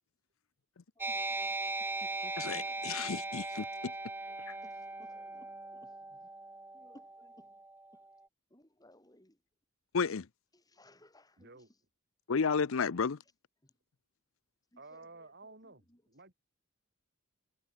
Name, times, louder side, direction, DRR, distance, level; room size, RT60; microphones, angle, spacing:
voice 1, 0.9-3.9 4.3-6.3 6.7-7.6 7.9-8.1 8.5-9.4 10.5-11.8 13.2-13.3 13.6-13.7 14.7-16.0, left 1 dB, 20° left, 4.8 m, -62 dB
sound 1, 1.0-8.1, right 2 dB, 10° right, 1.0 m, -39 dB
voice 2, 2.4-3.9 4.5-4.6 9.9-10.3 12.3-13.2, left 5 dB, 75° left, 0.6 m, -32 dB
voice 3, 11.4-11.7 14.8-16.3, right 3 dB, 50° right, 7.3 m, -53 dB
head